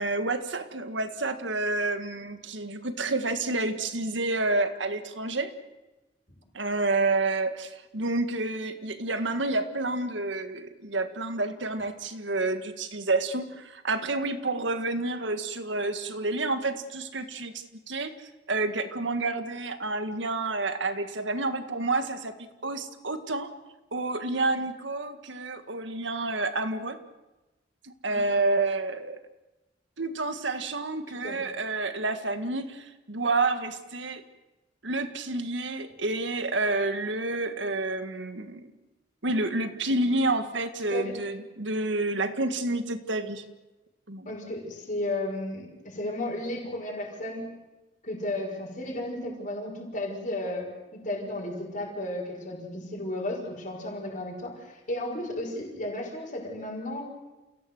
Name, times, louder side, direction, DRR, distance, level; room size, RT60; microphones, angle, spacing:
voice 1, 0.0-5.5 6.5-18.1 18.5-22.3 22.6-23.5 23.9-27.0 27.8-29.2 30.0-34.2 34.8-38.7 39.2-43.4 44.1-44.3, right 2 dB, 75° right, 9 dB, 1.8 m, -29 dB
voice 2, 44.2-47.4 48.0-57.0, left 1 dB, 40° left, -3 dB, 6.1 m, -34 dB
29.0 x 17.0 x 7.9 m, 1.1 s
head